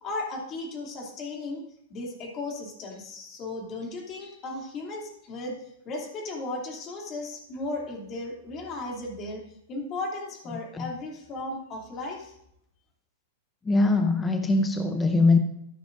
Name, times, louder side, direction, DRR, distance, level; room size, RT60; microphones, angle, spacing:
voice 1, 0.0-1.6 1.9-5.6 5.8-12.3, left 2 dB, 30° left, 0 dB, 2.8 m, -35 dB
voice 2, 13.7-15.4, left 3 dB, 10° left, 6 dB, 0.7 m, -22 dB
14.0 x 10.5 x 2.6 m, 0.77 s
hypercardioid pair, 145°, 0 cm